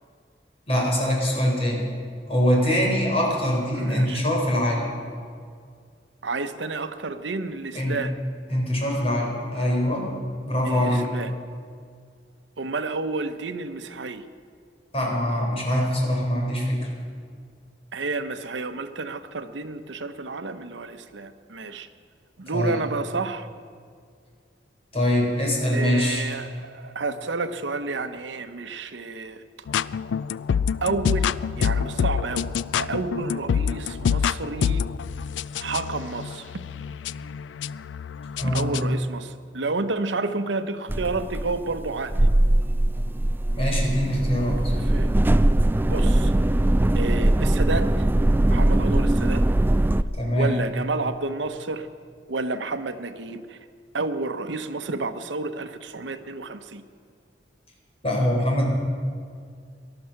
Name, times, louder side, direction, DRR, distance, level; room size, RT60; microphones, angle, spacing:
voice 1, 0.7-1.9 2.3-4.9 7.7-8.0 8.5-10.1 10.4-11.1 14.9-16.8 22.5-22.8 24.9-26.3 38.4-38.9 43.5-44.6 50.2-50.6 58.0-58.7, equal, 35° left, -1 dB, 4.0 m, -23 dB
voice 2, 3.8-4.2 6.2-8.1 10.6-11.3 12.6-14.3 17.9-21.9 22.4-23.5 25.7-29.7 30.8-32.5 32.8-34.8 35.6-36.5 38.4-42.2 44.8-45.1 45.9-46.3 46.9-48.1 48.5-49.4 50.3-51.9 52.3-53.6 53.9-56.8, right 3 dB, 80° right, 9 dB, 0.9 m, -30 dB
sound 1, 29.7-39.0, left 7 dB, 80° left, 0.3 m, -27 dB
sound 2, 40.9-50.0, right 1 dB, 10° right, 0.3 m, -21 dB
19.0 x 12.5 x 5.8 m, 2.2 s
head